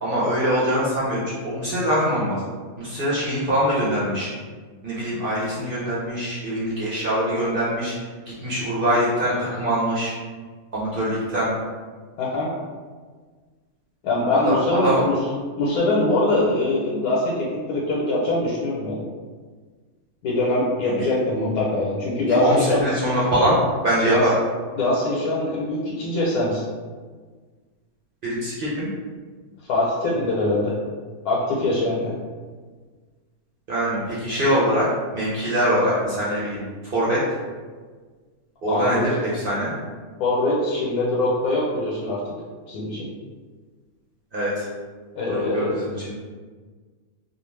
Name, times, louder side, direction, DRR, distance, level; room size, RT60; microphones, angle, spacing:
voice 1, 0.0-2.4 2.8-4.3 4.8-7.9 8.4-10.1 10.7-11.5 14.4-15.0 20.8-21.0 22.3-23.6 23.8-24.3 28.2-28.9 33.7-34.9 35.1-36.6 36.9-37.2 38.6-39.7 44.3-44.7 45.3-45.9, equal, 55° right, -8 dB, 0.6 m, -23 dB
voice 2, 12.2-12.5 14.0-15.2 15.6-19.0 20.2-22.8 24.0-24.3 24.8-26.6 29.7-30.7 31.2-32.2 38.7-39.0 40.2-42.2 42.7-43.1 45.1-45.7, left 2 dB, 90° left, -5 dB, 1.1 m, -23 dB
2.3 x 2.3 x 3.1 m, 1.5 s
omnidirectional pair, 1.5 m